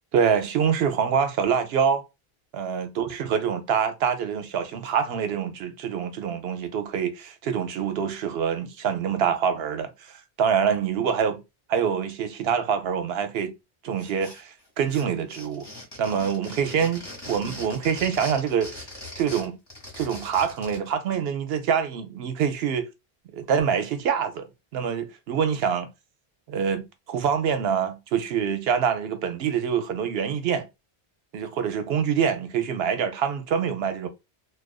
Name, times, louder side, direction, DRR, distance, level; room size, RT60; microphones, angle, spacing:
voice 1, 0.1-2.0 2.5-11.4 11.7-13.5 13.8-15.7 16.0-18.8 19.2-19.6 20.0-22.9 23.3-24.5 24.7-25.9 26.5-30.7 31.3-34.1, right 7 dB, 75° right, 0.8 m, -25 dB
sound 1, 14.0-14.6 14.9-20.9, left 1 dB, 25° left, 1.2 m, -40 dB
2.4 x 2.2 x 2.3 m
omnidirectional pair, 1.0 m